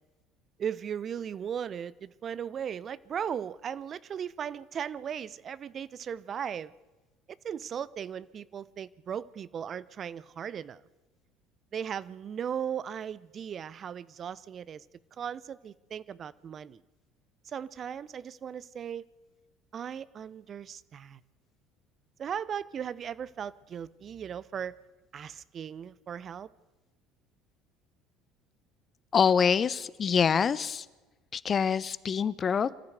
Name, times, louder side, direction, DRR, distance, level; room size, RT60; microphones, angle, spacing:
voice 1, 0.6-6.7 7.4-10.8 11.7-14.9 15.2-16.8 17.4-19.1 19.7-21.2 22.2-24.8 25.1-26.5, right 8 dB, 45° right, 19 dB, 0.7 m, -37 dB
voice 2, 29.1-30.8 31.3-32.8, left 6 dB, 40° left, 17 dB, 0.9 m, -25 dB
25.5 x 14.0 x 8.0 m, 1.2 s
hypercardioid pair, 65°, 0 cm